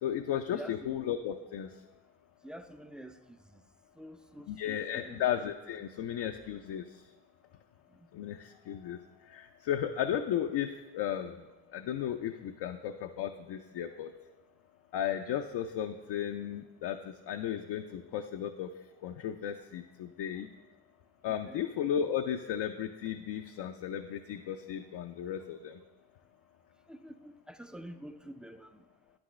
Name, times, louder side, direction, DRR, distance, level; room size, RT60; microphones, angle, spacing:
voice 1, 0.0-1.7 4.5-7.0 8.1-11.4 11.7-14.1 14.9-18.7 19.0-20.5 21.2-25.8, left 9 dB, 65° left, 5 dB, 0.5 m, -35 dB
voice 2, 0.5-1.0 2.4-3.2 3.5-3.6 4.0-5.3 21.4-21.7 26.9-28.8, right 1 dB, ahead, 9 dB, 0.4 m, -47 dB
9.4 x 6.1 x 3.1 m, 1.2 s
supercardioid pair, 50°, 43 cm